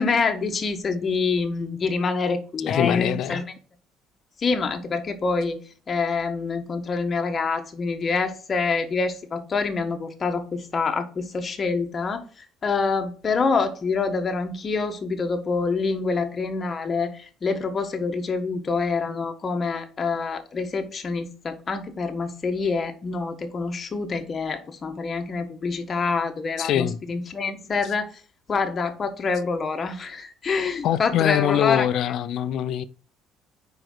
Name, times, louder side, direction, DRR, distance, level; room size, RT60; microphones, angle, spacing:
voice 1, 0.0-3.4 4.4-5.6 5.9-28.1 28.5-32.1, left 4 dB, 35° left, 1.3 m, -26 dB
voice 2, 2.7-3.4 26.6-27.0 30.8-32.8, left 10 dB, 65° left, 0.5 m, -23 dB
5.1 x 4.9 x 6.1 m
cardioid pair, 105°, 0 cm